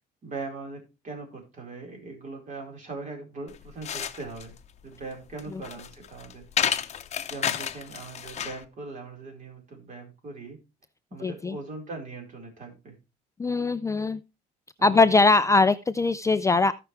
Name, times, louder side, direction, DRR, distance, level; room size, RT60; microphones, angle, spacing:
voice 1, 0.2-4.6 4.8-6.4 7.3-10.6 11.1-13.0 14.8-15.0, right 3 dB, 45° right, 1 dB, 4.6 m, -40 dB
sound 1, 3.5-8.6, left 8 dB, 40° left, 0.8 m, -31 dB
voice 2, 11.2-11.6 13.4-14.2 14.8-16.7, left 3 dB, 20° left, 12 dB, 0.4 m, -21 dB
15.0 x 5.9 x 3.3 m, 0.27 s
cardioid pair, 110°, 17 cm